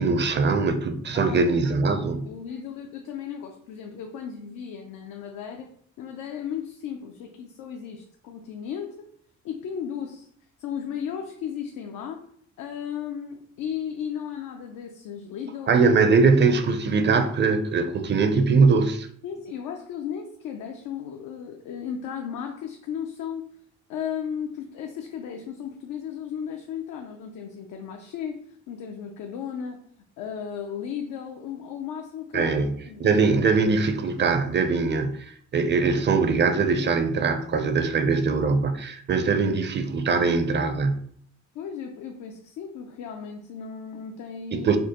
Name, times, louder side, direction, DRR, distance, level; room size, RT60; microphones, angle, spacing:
voice 1, 0.0-2.3 15.7-19.1 32.3-41.1 44.5-44.8, right 4 dB, 35° right, 0.5 m, -22 dB
voice 2, 1.1-1.6 2.2-5.7 6.0-9.0 9.4-10.3 10.6-12.3 12.6-15.8 19.2-23.5 23.9-29.8 30.2-33.1 41.5-44.7, left 8 dB, 85° left, 0.5 m, -35 dB
5.1 x 2.0 x 2.9 m
cardioid pair, 90°, 30 cm